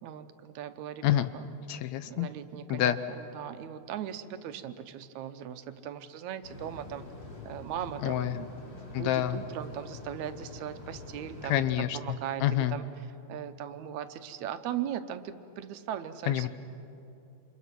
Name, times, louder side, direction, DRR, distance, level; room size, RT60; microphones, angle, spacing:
voice 1, 0.0-1.5 2.1-7.1 7.5-8.4 8.9-12.9 13.3-16.5, right 10 dB, 80° right, 10 dB, 2.2 m, -39 dB
voice 2, 1.7-2.3 2.7-3.0 8.0-8.4 8.9-9.4 11.5-12.0 12.4-12.8 16.3-16.5, left 12 dB, 75° left, 12 dB, 1.9 m, -27 dB
sound 1, 6.4-11.6, left 2 dB, 40° left, 3.5 m, -46 dB
28.5 x 26.5 x 6.1 m, 2.8 s
omnidirectional pair, 3.3 m